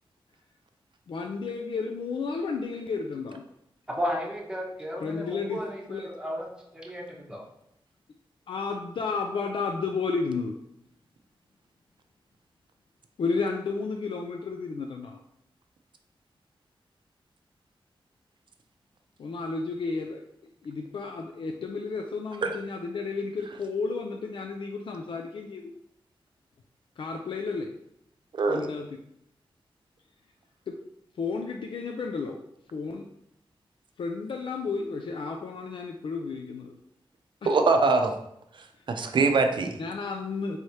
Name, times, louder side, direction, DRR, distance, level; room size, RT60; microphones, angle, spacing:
voice 1, 1.1-3.4 5.0-5.6 5.9-6.1 8.5-10.6 13.2-15.2 19.2-20.2 20.6-25.7 27.0-27.7 28.5-28.9 30.7-30.8 31.2-32.4 32.7-33.1 34.0-36.7 37.4-37.5 39.8-40.6, left 4 dB, 65° left, 3 dB, 0.4 m, -32 dB
voice 2, 4.0-7.4, equal, 10° right, -3 dB, 1.0 m, -34 dB
voice 3, 37.5-38.1 38.9-39.8, right 3 dB, 60° right, 6 dB, 0.5 m, -22 dB
4.7 x 3.2 x 2.8 m, 0.77 s
wide cardioid pair, 120°, 9 cm